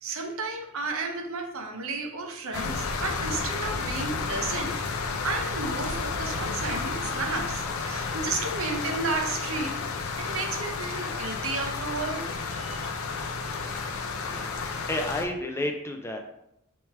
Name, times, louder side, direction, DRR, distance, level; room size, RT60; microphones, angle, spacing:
voice 1, 0.0-4.9 5.2-12.2 12.5-12.9, right 3 dB, 65° right, 3 dB, 0.7 m, -33 dB
sound 1, 2.5-15.2, left 4 dB, 75° left, 0.5 m, -31 dB
voice 2, 14.3-16.2, left 1 dB, 10° left, 3 dB, 0.3 m, -31 dB
3.5 x 3.1 x 4.2 m, 0.80 s
head